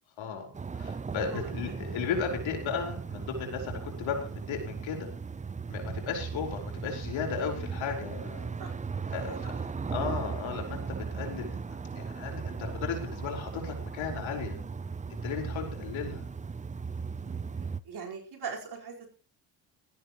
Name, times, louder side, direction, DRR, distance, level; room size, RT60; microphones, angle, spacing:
voice 1, 0.2-5.1 5.7-8.5 9.1-9.5 9.9-10.8 11.1-14.6 15.2-16.2, left 6 dB, 65° left, 2 dB, 4.6 m, -35 dB
sound 1, 0.5-17.8, right 5 dB, 15° right, 0.5 m, -37 dB
voice 2, 1.3-1.8 8.6-8.7 9.0-9.9 17.2-17.4 17.8-19.1, right 6 dB, 50° right, 1 dB, 4.6 m, -42 dB
17.0 x 13.5 x 3.1 m, 0.35 s
supercardioid pair, 65°, 50 cm